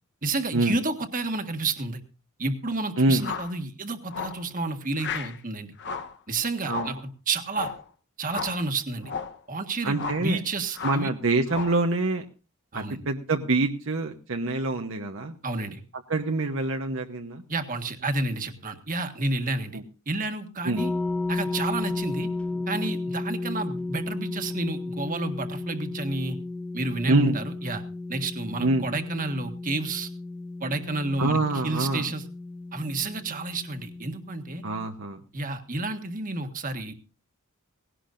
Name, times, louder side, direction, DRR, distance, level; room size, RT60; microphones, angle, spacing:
voice 1, 0.2-2.0 2.4-5.7 6.3-7.0 7.3-7.7 8.2-9.1 9.5-11.1 12.7-13.0 15.4-15.8 17.5-20.9 21.3-22.3 22.7-26.4 26.7-27.8 28.1-30.1 30.6-32.3 32.7-34.6 35.3-36.9, right 3 dB, 40° right, 6 dB, 1.6 m, -30 dB
sound 1, 3.2-3.6 4.1-4.4 5.0-5.4 5.8-6.2 6.6-7.0 7.5-7.8 8.3-8.6 9.0-9.4 9.9-10.3 10.7-11.1 11.5-11.8, left 5 dB, 50° left, 1.0 m, -34 dB
voice 2, 9.8-10.4 10.8-12.2 12.7-15.4 16.1-17.4 20.6-20.8 27.1-27.4 28.6-28.9 31.2-32.0 34.6-35.2, right 2 dB, 65° right, 4 dB, 1.0 m, -25 dB
sound 2, 20.7-34.9, left 2 dB, 5° left, 0.9 m, -34 dB
18.5 x 17.0 x 2.6 m, 0.33 s
head